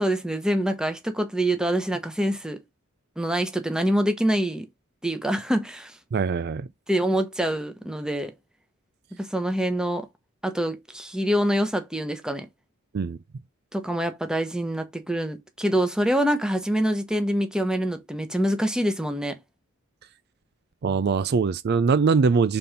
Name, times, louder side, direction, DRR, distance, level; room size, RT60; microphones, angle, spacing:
voice 1, 0.0-2.6 3.2-4.7 5.0-5.9 6.9-8.3 9.1-10.1 10.4-12.5 13.7-19.4 20.9-21.0, right 1 dB, 5° right, 1.1 m, -25 dB
voice 2, 6.1-6.7 12.9-13.2 20.8-22.6, right 5 dB, 50° right, 0.4 m, -22 dB
5.4 x 4.3 x 5.1 m
head